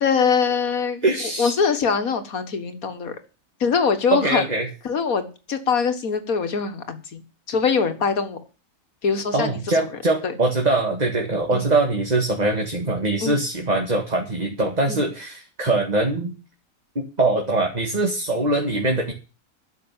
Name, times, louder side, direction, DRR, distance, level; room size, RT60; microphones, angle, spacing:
voice 1, 0.0-1.1 1.4-3.2 3.6-4.5 4.8-7.2 7.5-8.4 9.0-9.9 10.2-10.3 11.5-11.7 13.2-13.4 14.9-15.1, left 5 dB, 85° left, 9 dB, 2.0 m, -23 dB
voice 2, 1.0-1.5 4.1-4.7 9.3-16.3 17.0-19.1, right 2 dB, 30° right, 2 dB, 2.0 m, -22 dB
12.0 x 7.0 x 8.8 m, 0.33 s
omnidirectional pair, 1.4 m